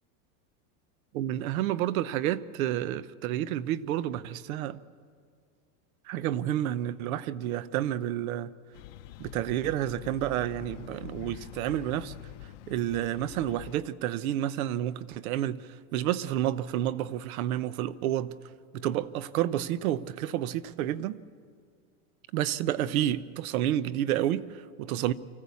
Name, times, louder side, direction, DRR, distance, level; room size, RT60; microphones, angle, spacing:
voice 1, 1.1-4.8 6.1-8.5 9.2-12.1 12.7-18.4 18.7-21.2 22.3-25.1, right 12 dB, 75° right, 0.9 m, -30 dB
sound 1, 8.7-13.7, left 14 dB, 55° left, 0.8 m, -45 dB
25.0 x 15.5 x 8.4 m
supercardioid pair, 165°, 43 cm